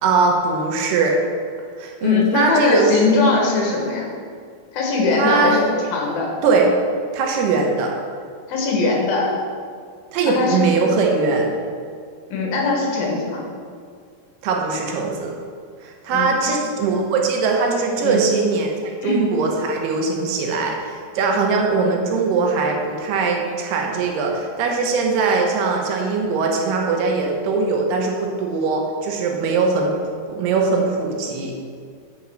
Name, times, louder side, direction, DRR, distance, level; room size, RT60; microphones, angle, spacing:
voice 1, 0.0-1.2 1.8-3.3 5.1-5.7 6.4-6.7 7.1-7.9 10.1-11.5 14.4-15.3 15.8-29.9 30.3-31.5, right 4 dB, 90° right, 1 dB, 3.1 m, -21 dB
voice 2, 2.0-4.1 4.7-5.6 5.9-6.3 8.5-9.3 10.2-10.6 12.3-13.4 16.1-16.5 18.0-18.2 19.0-19.3, left 3 dB, 70° left, -1 dB, 3.0 m, -20 dB
8.4 x 5.4 x 6.3 m, 2.1 s
omnidirectional pair, 4.5 m